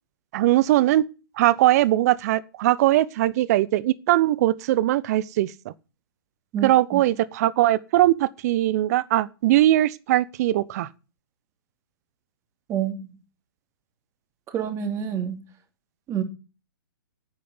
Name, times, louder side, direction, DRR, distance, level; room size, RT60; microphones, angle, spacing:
voice 1, 0.3-1.1 1.4-5.7 6.6-10.9, right 14 dB, 45° right, 0.9 m, -20 dB
voice 2, 6.5-7.0 12.7-13.1 14.5-15.4 16.1-16.2, right 9 dB, 25° right, 2.7 m, -28 dB
9.9 x 8.6 x 9.6 m
figure-of-eight pair, 120°, 12 cm